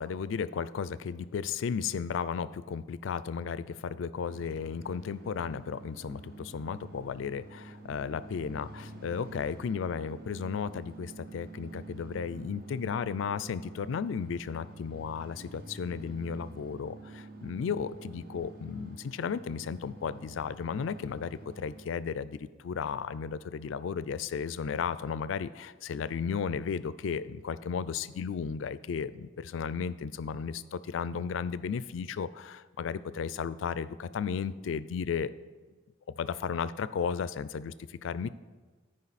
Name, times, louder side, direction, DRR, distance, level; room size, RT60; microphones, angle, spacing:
voice 1, 0.0-35.3 36.2-38.3, left 6 dB, 75° left, 16 dB, 0.4 m, -34 dB
sound 1, 4.2-21.9, right 2 dB, 50° right, 0.8 m, -48 dB
13.5 x 5.1 x 4.1 m, 1.3 s
head